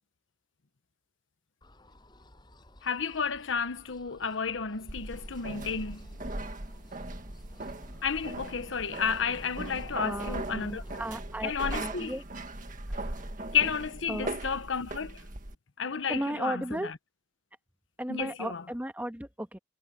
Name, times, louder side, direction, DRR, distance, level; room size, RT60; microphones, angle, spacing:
sound 1, 1.6-11.1, left 1 dB, 25° left, 6.9 m, -52 dB
voice 1, 2.8-6.1 8.0-10.8 11.4-12.1 13.5-15.2 15.8-16.9 18.1-18.6, left 6 dB, 80° left, 1.0 m, -32 dB
sound 2, 4.9-15.5, right 2 dB, 45° right, 1.8 m, -39 dB
voice 2, 10.0-12.2 12.9-13.2 14.1-14.3 16.1-16.9 18.0-19.6, right 1 dB, 10° right, 1.4 m, -35 dB
head